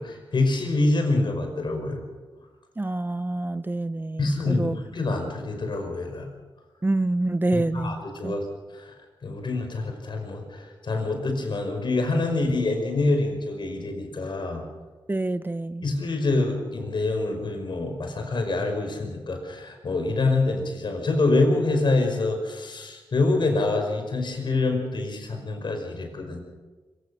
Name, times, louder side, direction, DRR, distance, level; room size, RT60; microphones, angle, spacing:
voice 1, 0.0-2.0 4.2-6.3 7.5-8.9 9.2-14.6 15.8-26.4, left 2 dB, 60° left, 4 dB, 5.4 m, -26 dB
voice 2, 2.8-4.8 6.8-8.3 15.1-15.8, right 2 dB, 20° right, 13 dB, 0.7 m, -27 dB
25.5 x 17.0 x 6.5 m, 1.3 s
cardioid pair, 80°, 9 cm